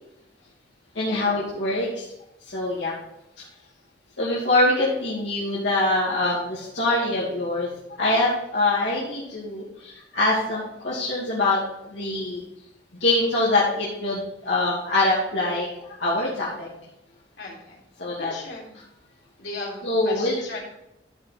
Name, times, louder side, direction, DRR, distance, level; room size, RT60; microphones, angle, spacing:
voice 1, 0.9-2.0 2.5-2.9 4.2-7.7 8.0-12.4 13.0-16.7 18.0-18.3 19.8-20.4, left 2 dB, 85° left, -8 dB, 2.7 m, -24 dB
voice 2, 17.4-17.8 18.2-19.0 19.4-20.6, left 2 dB, 70° left, -4 dB, 3.7 m, -37 dB
13.5 x 5.3 x 4.2 m, 0.85 s
head